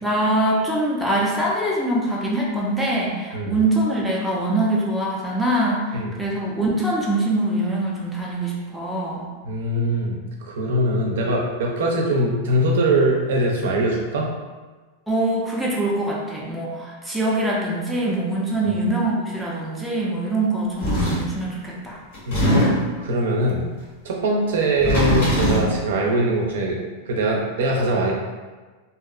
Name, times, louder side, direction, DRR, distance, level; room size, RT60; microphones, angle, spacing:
voice 1, 0.0-9.3 15.1-22.0, right 1 dB, ahead, -6 dB, 0.5 m, -23 dB
voice 2, 9.4-14.3 18.6-18.7 22.3-23.7 24.0-26.8 27.1-28.1, right 1 dB, 85° right, -1 dB, 0.5 m, -22 dB
sound 1, 20.8-21.3 22.1-23.0 24.6-25.8, equal, 65° left, 1.2 m, -21 dB
2.7 x 2.0 x 2.4 m, 1.3 s
supercardioid pair, 145°, 0 cm